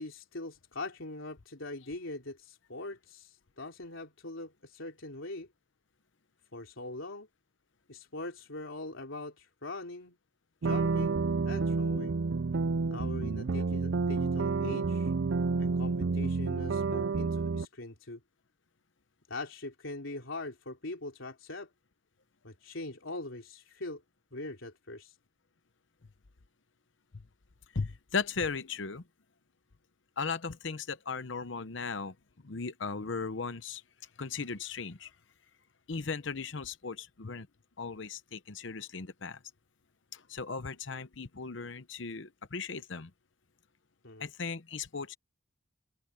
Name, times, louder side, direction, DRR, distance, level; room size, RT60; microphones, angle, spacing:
voice 1, 0.0-5.5 6.5-7.3 7.9-10.2 10.6-12.2 12.9-15.1 15.6-18.2 19.3-21.7 22.4-24.0 24.3-25.2 44.0-44.3, left 2 dB, 85° left, 3.3 m, -42 dB
sound 1, 10.6-17.6, right 4 dB, 65° right, 0.5 m, -29 dB
voice 2, 27.7-29.0 30.2-32.2 32.4-33.8 34.2-35.1 35.9-37.5 37.8-39.4 40.1-43.1 44.2-45.2, left 5 dB, 70° left, 0.9 m, -37 dB
open air
head